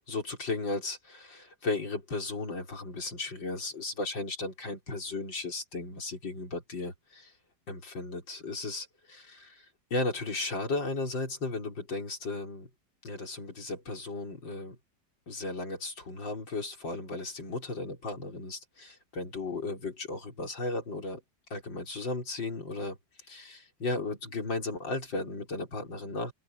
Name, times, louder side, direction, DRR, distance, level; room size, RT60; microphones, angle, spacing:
voice 1, 0.1-7.3 7.7-9.6 9.9-12.7 13.0-14.8 15.3-18.9 19.2-21.2 21.5-23.0 23.3-26.3, left 2 dB, 85° left, 5.5 m, -35 dB
open air
omnidirectional pair, 2.0 m